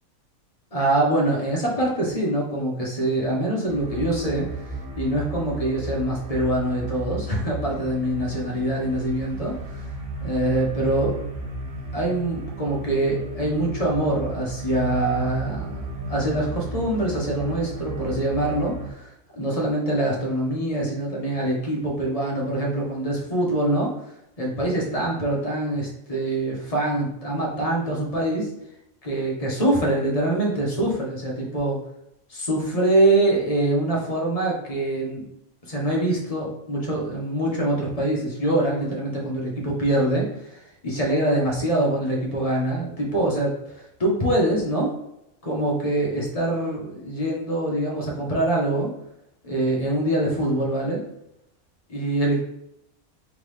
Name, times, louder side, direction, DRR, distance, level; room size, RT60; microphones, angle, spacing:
voice 1, 0.7-4.5 5.0-9.8 10.2-11.2 11.9-15.6 16.1-19.1 19.3-23.9 24.4-28.5 29.0-31.8 32.3-35.3 35.7-43.5 44.0-44.9 45.4-48.9 49.4-51.0 51.9-52.4, right 1 dB, 30° left, -3 dB, 1.0 m, -24 dB
sound 1, 3.7-18.9, right 2 dB, 85° right, 1.3 m, -34 dB
3.7 x 3.6 x 3.2 m, 0.82 s
omnidirectional pair, 1.5 m